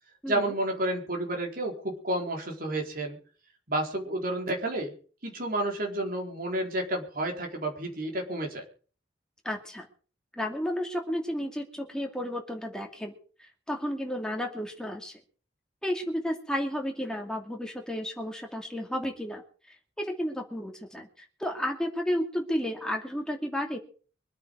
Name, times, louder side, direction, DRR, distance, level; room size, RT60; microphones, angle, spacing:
voice 1, 0.3-3.2 3.7-4.9 5.2-8.6, right 1 dB, 50° right, 2 dB, 4.2 m, -30 dB
voice 2, 9.4-9.9 10.4-15.2 15.8-19.4 20.0-23.8, equal, 5° left, 1 dB, 2.5 m, -32 dB
24.5 x 9.5 x 4.8 m, 0.41 s
head